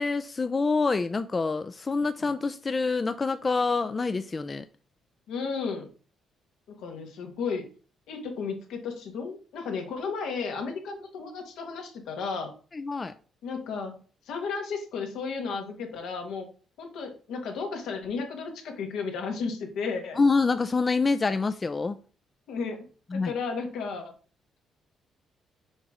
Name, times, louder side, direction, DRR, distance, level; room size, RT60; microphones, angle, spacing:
voice 1, 0.0-4.6 12.7-13.1 20.2-22.0 23.1-23.3, left 4 dB, 30° left, 0.4 m, -26 dB
voice 2, 5.3-5.9 6.7-7.6 8.1-12.5 13.4-13.9 14.2-16.5 16.8-20.2 22.5-22.8 23.1-24.1, left 5 dB, 80° left, 1.5 m, -33 dB
6.4 x 3.0 x 4.9 m
cardioid pair, 90°, 0 cm